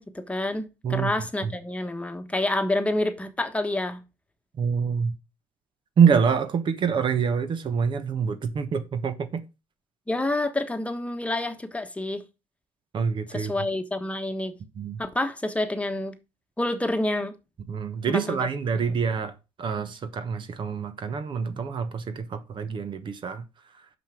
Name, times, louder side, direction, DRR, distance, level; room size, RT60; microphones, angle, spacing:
voice 1, 0.0-4.0 10.1-12.2 13.3-14.5 15.0-16.2 16.6-17.3 18.1-18.4 18.9-19.0, left 2 dB, 10° left, 1.3 m, -28 dB
voice 2, 4.6-5.1 6.0-9.4 12.9-13.5 14.8-15.0 17.7-23.4, right 6 dB, 50° right, 1.2 m, -26 dB
6.1 x 5.6 x 6.1 m
supercardioid pair, 80°, 11 cm